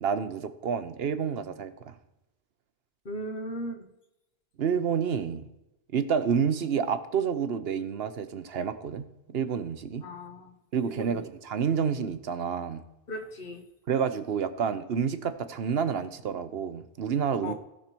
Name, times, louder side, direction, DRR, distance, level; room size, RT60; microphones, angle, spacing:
voice 1, 0.0-2.0 4.6-5.5 5.9-10.1 10.7-12.8 13.9-17.5, right 7 dB, 75° right, 11 dB, 1.0 m, -29 dB
voice 2, 3.0-3.9 10.0-10.5 10.8-11.2 13.1-13.6 17.4-17.5, equal, 60° left, 5 dB, 1.5 m, -37 dB
16.5 x 5.6 x 4.5 m, 0.92 s
omnidirectional pair, 1.0 m